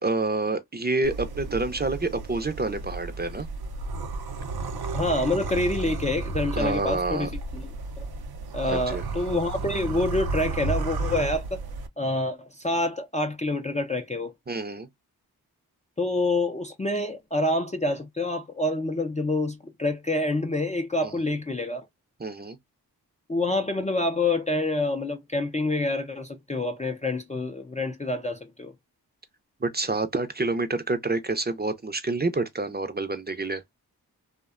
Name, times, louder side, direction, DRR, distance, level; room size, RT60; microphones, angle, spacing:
voice 1, 0.0-3.5 6.5-7.3 8.6-9.0 14.5-14.9 21.0-21.1 22.2-22.6 29.6-33.6, right 3 dB, 25° right, 0.6 m, -28 dB
sound 1, 1.0-11.9, right 3 dB, 70° right, 0.6 m, -33 dB
voice 2, 4.9-7.7 8.0-8.1 8.5-11.6 12.0-14.3 16.0-21.9 23.3-28.7, left 2 dB, 20° left, 0.4 m, -27 dB
2.6 x 2.2 x 2.3 m
cardioid pair, 50°, 39 cm